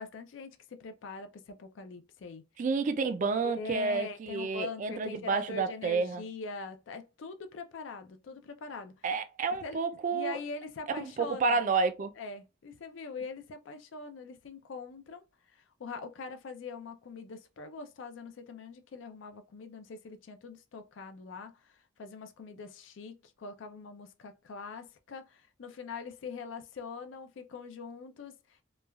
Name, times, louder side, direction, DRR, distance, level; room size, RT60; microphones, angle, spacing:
voice 1, 0.0-2.4 3.4-9.0 9.6-9.8 10.1-11.6 12.2-28.6, left 4 dB, 80° left, 0.4 m, -43 dB
voice 2, 2.6-6.2 9.0-10.4 11.2-12.1, right 4 dB, 40° right, 0.3 m, -30 dB
3.1 x 2.2 x 2.2 m
head